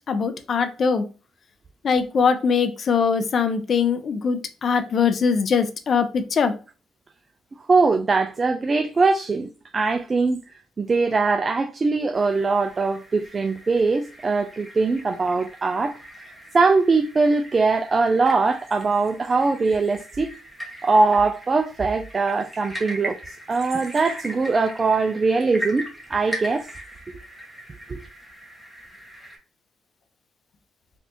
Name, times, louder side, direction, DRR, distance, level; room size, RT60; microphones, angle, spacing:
voice 1, 0.1-1.1 1.8-6.5, left 6 dB, 50° left, 0.5 m, -22 dB
voice 2, 7.7-9.5 9.7-10.4 10.8-15.9 16.5-20.3 20.8-23.2 23.5-26.6 27.9-28.0, right 4 dB, 35° right, 0.3 m, -21 dB
sound 1, 12.1-29.4, right 1 dB, ahead, 1.1 m, -39 dB
3.4 x 2.6 x 2.7 m
cardioid pair, 90°, 0 cm